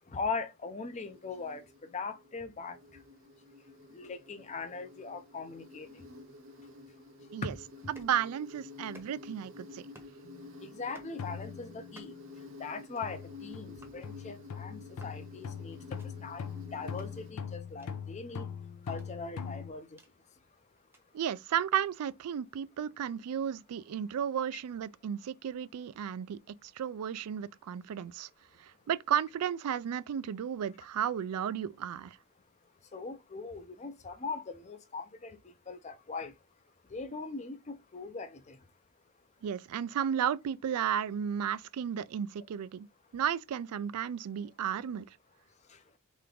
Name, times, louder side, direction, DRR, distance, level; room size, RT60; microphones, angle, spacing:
voice 1, 0.1-2.8 3.9-6.1 7.4-7.6 10.6-12.2 12.6-15.8 16.2-18.5 18.8-20.0 32.9-36.3 36.9-38.6 45.7-45.8, left 4 dB, 30° left, 0.5 m, -40 dB
Insect, 0.6-17.3, left 3 dB, 60° right, 0.8 m, -51 dB
sound 1, 7.8-8.2 8.8-9.4 9.8-10.2 10.8-11.2 11.8-12.3 12.8-13.1 13.8-14.0 14.8-15.2 15.8-16.1 16.8-17.1 17.8-17.9 18.8-20.1 20.7-21.0 21.8-21.9, right 2 dB, 10° right, 0.8 m, -59 dB
voice 2, 7.9-9.8 21.1-28.3 28.6-32.2 39.4-42.9 43.1-45.1, right 9 dB, 90° right, 0.3 m, -33 dB
sound 2, 10.2-10.5 11.2-12.1 13.0-19.7, left 6 dB, 85° left, 0.4 m, -42 dB
3.3 x 3.1 x 3.8 m
head